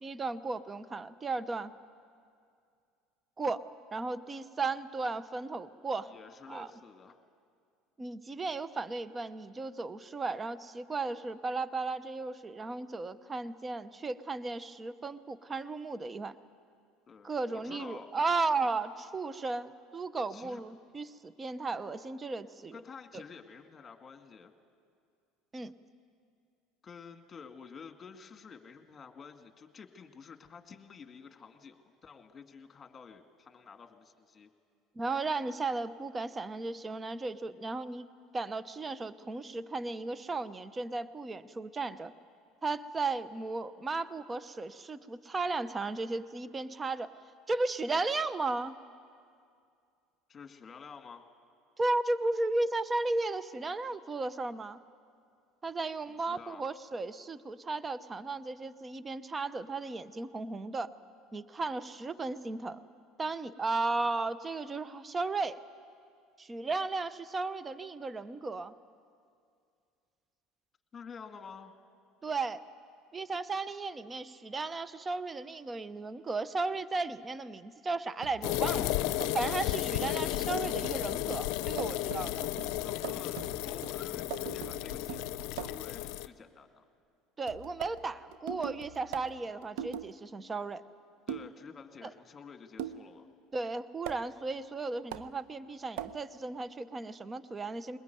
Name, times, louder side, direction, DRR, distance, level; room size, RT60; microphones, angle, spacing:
voice 1, 0.0-1.7 3.4-6.1 6.5-6.7 8.0-16.4 17.2-22.7 23.1-23.2 25.5-25.7 35.0-38.1 38.3-42.1 42.6-47.1 47.5-48.7 51.8-54.8 55.6-60.9 61.3-62.8 63.2-65.6 66.4-68.7 72.2-72.6 73.1-78.9 79.3-82.4 87.4-90.8 92.0-92.1 93.5-98.0, right 3 dB, 25° right, 15 dB, 0.8 m, -35 dB
voice 2, 6.0-7.2 17.1-18.1 20.3-20.6 22.7-24.5 26.8-34.5 50.3-51.3 56.1-56.7 70.9-71.7 82.8-86.9 91.3-93.3, left 5 dB, 30° left, 6 dB, 2.0 m, -50 dB
sound 1, 78.2-85.9 87.5-90.1 91.3-91.6 92.8-93.1 94.1-94.2 95.1-95.3 96.0-96.2, right 10 dB, 70° right, 0.8 m, -42 dB
sound 2, 78.4-86.3, left 16 dB, 70° left, 0.6 m, -33 dB
Bowed string instrument, 78.4-82.2, left 1 dB, 45° right, 5.2 m, -62 dB
22.0 x 20.5 x 9.3 m, 2.3 s
hypercardioid pair, 80°, 0 cm